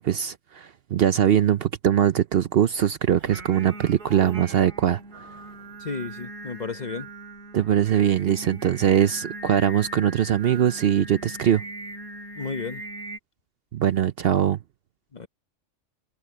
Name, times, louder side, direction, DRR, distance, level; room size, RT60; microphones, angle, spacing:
voice 1, 0.0-5.3 7.5-11.6 13.7-14.6, right 10 dB, 60° right, 0.7 m, -22 dB
Singing, 3.2-13.2, right 2 dB, 90° right, 3.3 m, -40 dB
voice 2, 5.8-7.1 12.3-12.8 15.1-15.3, left 5 dB, 40° left, 0.9 m, -33 dB
omnidirectional pair, 1.3 m